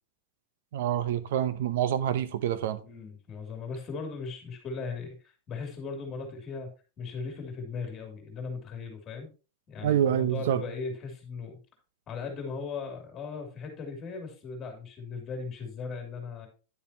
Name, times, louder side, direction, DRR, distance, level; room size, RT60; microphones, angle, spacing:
voice 1, 0.7-2.8 9.8-10.6, right 10 dB, 70° right, 0.7 m, -27 dB
voice 2, 2.8-6.7 7.0-9.3 9.7-11.6 12.1-16.5, left 4 dB, 20° left, 2.5 m, -38 dB
10.5 x 7.1 x 2.8 m
supercardioid pair, 165°, 0 cm